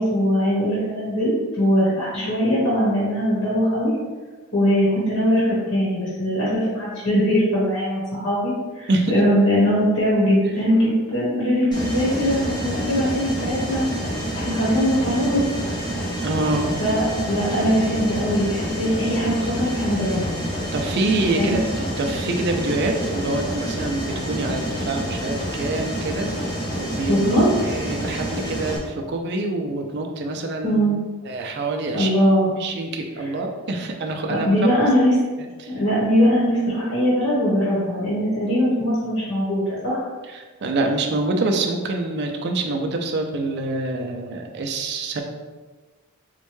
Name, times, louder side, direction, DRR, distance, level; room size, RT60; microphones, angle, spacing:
voice 1, 0.0-3.9 4.5-13.8 14.3-15.4 16.8-20.4 21.3-21.6 27.1-27.7 30.6-30.9 31.9-32.5 33.2-33.3 34.3-35.1 35.7-40.0, equal, 70° left, -8 dB, 1.1 m, -21 dB
Mechanisms, 11.7-28.8, equal, 20° left, 0.7 m, -28 dB
voice 2, 16.2-16.7 20.7-27.2 27.6-30.8 31.2-32.1 32.6-34.5 34.8-34.9 35.4-35.7 40.3-45.2, right 2 dB, 50° right, 3 dB, 0.4 m, -26 dB
4.4 x 2.1 x 3.0 m, 1.3 s
head